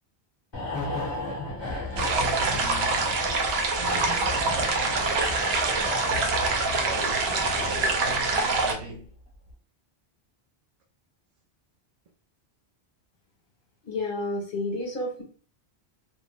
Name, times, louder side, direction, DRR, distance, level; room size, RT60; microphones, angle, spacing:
sound 1, 0.5-9.1 9.3-9.5, left 2 dB, 30° left, 0.7 m, -35 dB
voice 1, 2.0-3.2 3.8-5.3 5.8-9.1, right 2 dB, 50° right, 0.5 m, -39 dB
sound 2, 2.0-8.7, right 3 dB, 75° right, 0.8 m, -25 dB
voice 2, 13.9-15.2, left 2 dB, 55° left, 0.9 m, -30 dB
2.6 x 2.1 x 3.1 m
omnidirectional pair, 1.1 m